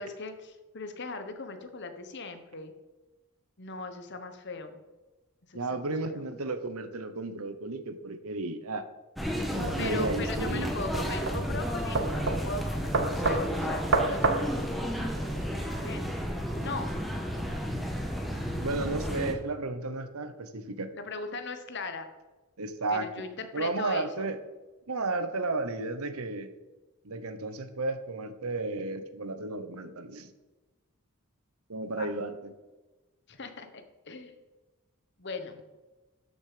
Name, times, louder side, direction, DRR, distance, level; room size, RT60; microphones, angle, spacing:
voice 1, 0.0-2.7 3.6-4.8 5.5-6.2 9.8-16.1 16.6-17.0 20.9-22.1 22.9-24.3 31.9-32.1 33.3-33.7 34.0-34.3 35.2-35.6, left 3 dB, 50° left, 8 dB, 1.2 m, -39 dB
voice 2, 5.5-8.8 9.5-10.7 18.6-20.9 22.6-23.1 23.5-24.4 24.9-26.5 27.0-30.3 31.7-32.5, right 3 dB, 80° right, 10 dB, 1.0 m, -33 dB
sound 1, 9.2-19.3, equal, ahead, 1.2 m, -32 dB
sound 2, 9.8-15.5, right 3 dB, 55° right, 1.0 m, -30 dB
12.5 x 6.3 x 5.1 m, 1.2 s
head